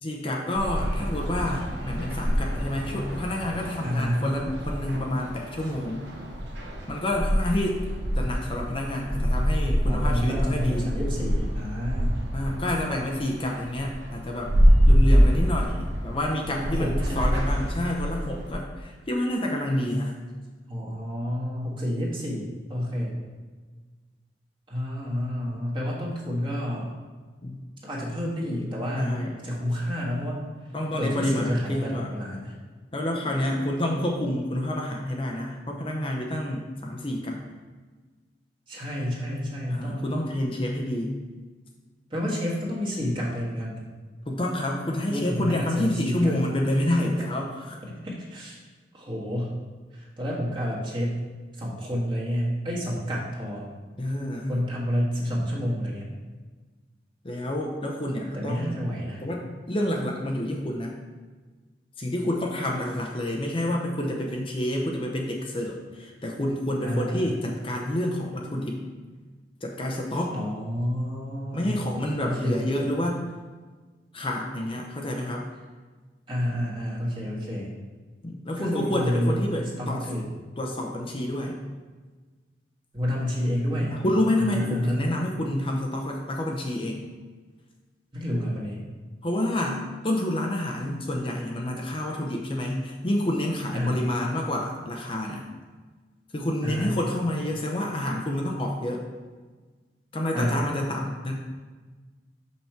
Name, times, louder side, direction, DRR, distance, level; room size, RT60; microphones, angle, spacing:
voice 1, 0.0-6.0 6.9-7.8 8.2-10.9 12.3-14.5 14.9-20.2 27.4-27.6 28.9-29.4 30.7-32.1 32.9-37.4 39.7-41.1 44.3-47.8 54.0-54.5 57.2-58.8 59.2-60.9 62.0-68.8 69.6-70.3 71.5-73.2 74.1-75.4 78.2-80.0 80.6-81.6 83.9-87.0 89.2-95.4 96.3-99.0 100.1-101.3, left 1 dB, 30° left, 0 dB, 0.7 m, -28 dB
sound 1, 0.6-18.5, equal, 85° right, 1.1 m, -25 dB
voice 2, 3.8-4.2 9.8-12.2 16.6-17.3 20.7-23.2 24.7-26.9 27.8-30.4 31.0-32.6 38.7-40.0 42.1-43.8 45.0-46.3 47.8-48.6 48.9-49.6 49.9-51.2 51.6-53.7 54.5-56.1 58.3-59.2 66.8-67.3 70.3-71.9 72.2-72.7 76.3-77.7 78.6-79.5 79.8-80.3 82.9-84.0 84.4-85.1 88.1-88.9 93.7-94.0 96.6-97.0 100.3-100.6, equal, 30° right, -4 dB, 1.6 m, -29 dB
6.0 x 5.7 x 4.5 m, 1.4 s
head